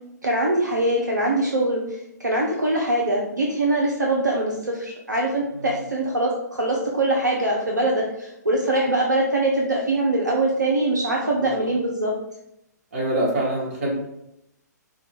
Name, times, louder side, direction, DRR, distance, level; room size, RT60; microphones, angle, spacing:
voice 1, 0.2-12.1, right 1 dB, 75° right, -1 dB, 0.6 m, -23 dB
voice 2, 11.4-11.7 12.9-13.9, right 1 dB, 40° right, -3 dB, 1.4 m, -25 dB
4.6 x 2.3 x 3.5 m, 0.83 s
figure-of-eight pair, 125°, 10 cm